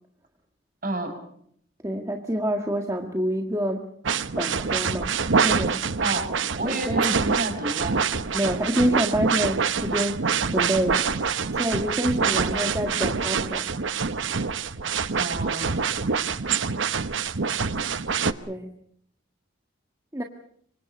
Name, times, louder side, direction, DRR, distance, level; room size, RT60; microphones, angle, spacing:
voice 1, 0.8-1.1 6.0-6.3 6.5-8.0 15.2-15.8, right 2 dB, 45° right, 5 dB, 6.4 m, -29 dB
voice 2, 1.8-3.9 4.4-5.1 5.4-5.8 6.6-7.0 8.3-11.0 11.5-13.7 18.4-18.7 20.1-20.2, equal, 15° right, 2 dB, 1.6 m, -27 dB
sound 1, 4.0-18.3, right 5 dB, 65° right, 0.9 m, -26 dB
27.0 x 24.5 x 5.2 m, 0.66 s
head